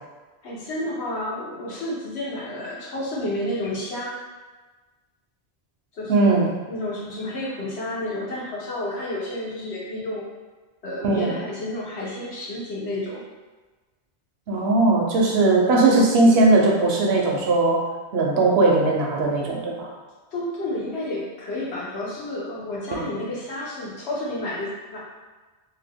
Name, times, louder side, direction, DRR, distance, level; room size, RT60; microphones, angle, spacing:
voice 1, 0.4-4.2 5.9-10.3 10.8-13.3 20.3-25.0, left 1 dB, 75° left, -5 dB, 1.1 m, -31 dB
voice 2, 6.1-6.5 11.0-11.3 14.5-17.8 18.1-19.9 22.9-23.1, right 2 dB, 70° right, -1 dB, 0.8 m, -19 dB
2.8 x 2.2 x 3.4 m, 1.3 s
omnidirectional pair, 1.1 m